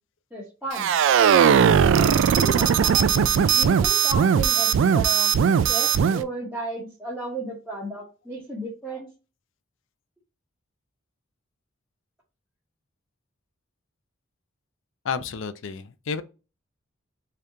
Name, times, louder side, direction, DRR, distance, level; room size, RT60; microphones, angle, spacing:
voice 1, 0.3-1.0 1.8-5.3 5.7-9.1, right 2 dB, ahead, 1.0 m, -34 dB
sound 1, 0.7-6.2, right 7 dB, 60° right, 0.3 m, -19 dB
voice 2, 15.0-16.2, left 5 dB, 65° left, 0.4 m, -31 dB
3.4 x 2.8 x 3.6 m
head